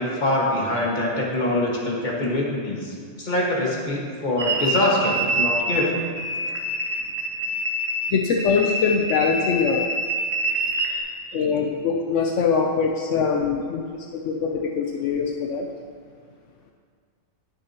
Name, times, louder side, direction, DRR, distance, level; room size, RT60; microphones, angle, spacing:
voice 1, 0.0-6.0, left 1 dB, 40° left, -3 dB, 1.8 m, -24 dB
sound 1, 4.4-5.9 6.2-11.0, right 1 dB, 85° right, 1.6 m, -26 dB
voice 2, 8.1-9.8 10.9-11.0 11.3-15.7, left 5 dB, 75° left, 1 dB, 1.0 m, -23 dB
19.0 x 6.4 x 2.9 m, 2.1 s
omnidirectional pair, 1.3 m